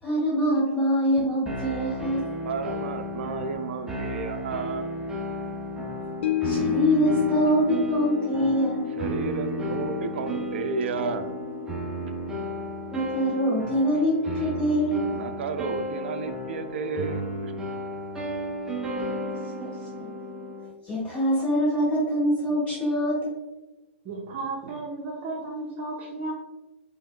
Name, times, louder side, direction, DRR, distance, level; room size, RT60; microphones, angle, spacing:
voice 1, 0.0-2.2 6.4-8.9 12.9-15.1 19.6-20.1 20.8-23.3, equal, 20° left, -6 dB, 1.3 m, -24 dB
sound 1, 1.5-20.7, right 1 dB, 10° right, 0.7 m, -33 dB
voice 2, 2.4-4.9 8.9-11.3 15.1-17.5, right 5 dB, 65° right, 8 dB, 0.4 m, -32 dB
sound 2, 6.2-16.6 17.0-17.1, left 11 dB, 70° left, 0.4 m, -33 dB
voice 3, 24.0-26.3, right 3 dB, 35° right, -7 dB, 0.9 m, -34 dB
4.4 x 3.4 x 2.2 m, 1.1 s
hypercardioid pair, 120°, 7 cm